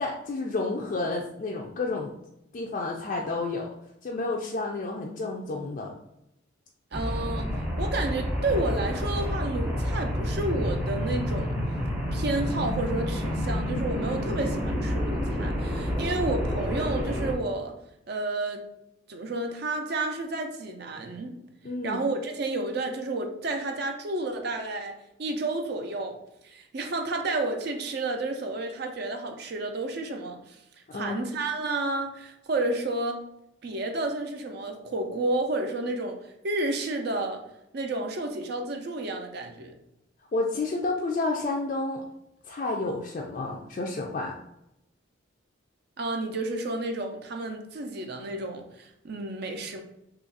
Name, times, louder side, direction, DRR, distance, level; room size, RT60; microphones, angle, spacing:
voice 1, 0.0-2.1 2.5-3.7 4.0-5.9 21.6-22.0 30.9-31.3 40.3-42.0 42.4-44.4, left 3 dB, 40° left, -1 dB, 0.3 m, -30 dB
sound 1, 6.9-17.3, equal, 5° right, 0.6 m, -29 dB
voice 2, 6.9-7.5 7.8-11.6 12.1-17.7 18.1-18.6 19.1-21.3 21.8-24.9 25.2-26.2 26.4-30.6 30.9-33.2 33.6-36.2 36.4-37.4 37.7-39.7 46.0-49.8, right 2 dB, 50° right, 4 dB, 0.5 m, -31 dB
2.8 x 2.4 x 3.9 m, 0.83 s
head